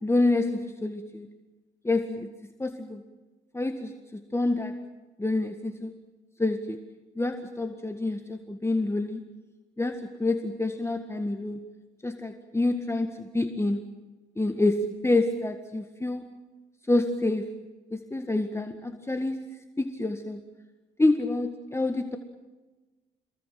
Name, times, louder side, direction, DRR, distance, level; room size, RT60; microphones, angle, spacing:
voice 1, 0.0-1.3 1.8-2.3 2.6-3.0 3.5-4.7 5.2-5.9 6.4-6.8 7.2-9.2 9.8-11.6 12.0-13.8 14.4-16.3 16.9-17.5 17.9-19.4 19.8-20.4 21.0-22.2, left 2 dB, 15° left, 6 dB, 1.8 m, -27 dB
27.5 x 21.0 x 7.7 m, 1.2 s
cardioid pair, 90°, 20 cm